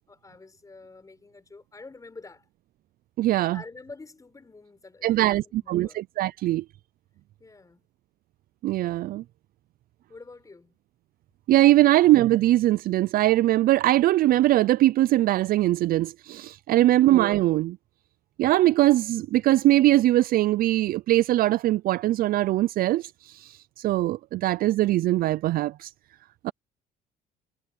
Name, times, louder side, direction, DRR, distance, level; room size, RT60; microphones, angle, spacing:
voice 1, 0.1-2.5 3.5-6.0 7.4-7.8 10.1-10.8 11.8-12.0 16.7-17.0, left 3 dB, 20° left, 6.6 m, -47 dB
voice 2, 3.2-3.6 5.0-6.6 8.6-9.2 11.5-17.8 18.4-25.9 26.4-26.5, right 15 dB, 60° right, 0.4 m, -21 dB
cardioid pair, 110°, 17 cm